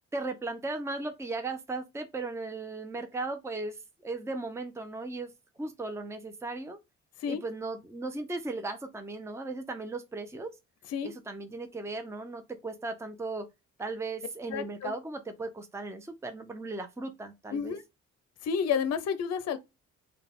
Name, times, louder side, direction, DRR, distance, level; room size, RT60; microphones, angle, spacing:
voice 1, 0.1-3.8 4.0-5.3 5.6-6.8 7.3-10.5 11.0-13.5 13.8-17.7, right 3 dB, 10° right, 0.6 m, -37 dB
voice 2, 14.5-14.9 17.5-17.8 18.4-19.6, left 7 dB, 55° left, 0.6 m, -30 dB
3.9 x 2.3 x 3.6 m
cardioid pair, 90°, 30 cm